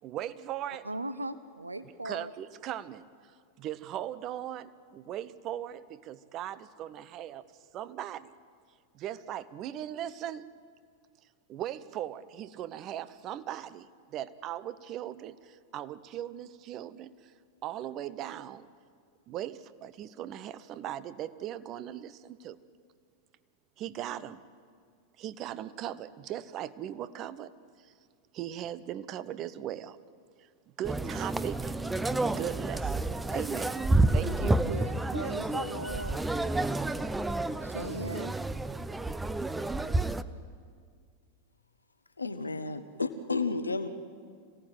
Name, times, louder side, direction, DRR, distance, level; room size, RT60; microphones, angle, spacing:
voice 1, 0.0-0.9 2.0-7.4 7.7-8.3 8.9-10.5 11.5-17.3 17.6-18.7 19.3-22.6 23.8-24.4 25.2-27.5 27.8-27.9 28.3-30.0 30.4-30.5 30.8-31.7 32.2-33.0 33.3-34.6, right 11 dB, 35° right, 15 dB, 0.9 m, -39 dB
voice 2, 0.8-2.3 34.3-36.2 37.6-38.3, right 2 dB, 80° right, 13 dB, 0.8 m, -38 dB
sound 1, 30.8-40.2, right 2 dB, 10° right, 0.7 m, -30 dB
voice 3, 42.2-43.9, left 3 dB, 80° left, 11 dB, 1.2 m, -32 dB
26.0 x 17.5 x 9.1 m, 2.1 s
figure-of-eight pair, 90°, 0 cm